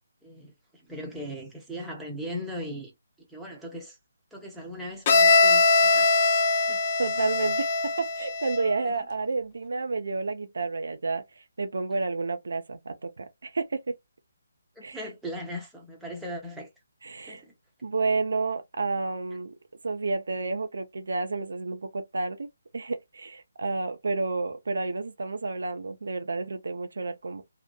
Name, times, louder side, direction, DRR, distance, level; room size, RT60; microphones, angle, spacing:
voice 1, 0.2-2.9 3.3-4.0 4.3-6.1 6.5-6.8 8.8-8.9 14.7-16.7 17.2-17.5, equal, 5° right, 0.8 m, -39 dB
Bowed string instrument, 5.1-8.8, left 4 dB, 35° left, 0.4 m, -22 dB
voice 2, 7.0-14.0 14.8-15.0 17.0-17.4 17.8-19.5 19.8-22.5 22.7-27.4, right 3 dB, 65° right, 0.4 m, -30 dB
2.8 x 2.1 x 2.4 m
figure-of-eight pair, 145°, 0 cm